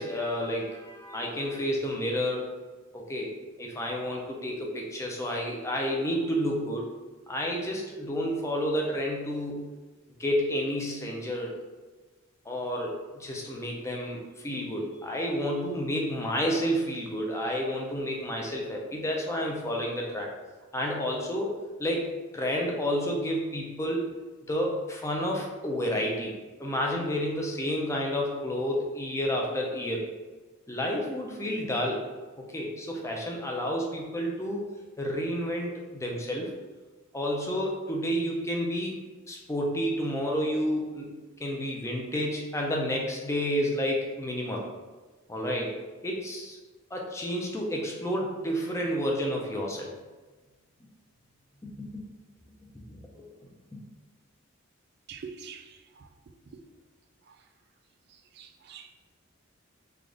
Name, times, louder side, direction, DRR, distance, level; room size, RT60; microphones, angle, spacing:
voice 1, 0.0-2.5 2.9-3.3 3.6-6.9 7.3-9.6 10.2-11.5 12.5-20.3 20.7-21.5 21.8-24.1 24.5-26.3 26.6-30.1 30.7-32.0 32.5-34.7 35.0-36.5 37.1-38.9 39.3-44.6 45.3-46.6 46.9-49.9 51.6-52.0 52.9-53.3 53.7-53.8, equal, 15° left, -1 dB, 0.5 m, -30 dB
voice 2, 55.1-55.7 56.0-56.1 58.4-58.9, right 6 dB, 50° right, 5 dB, 0.3 m, -43 dB
3.4 x 2.5 x 3.7 m, 1.3 s
head